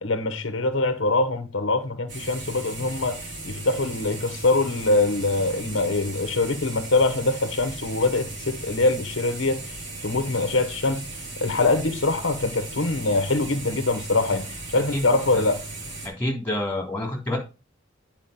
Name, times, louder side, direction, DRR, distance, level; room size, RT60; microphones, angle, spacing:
voice 1, 0.0-9.6 10.0-11.0 11.4-15.6, left 2 dB, 70° left, 1.0 m, -23 dB
sound 1, 2.1-16.1, right 2 dB, 65° right, 3.0 m, -37 dB
voice 2, 16.0-17.4, left 1 dB, 10° left, 3.4 m, -28 dB
8.9 x 5.1 x 5.2 m
head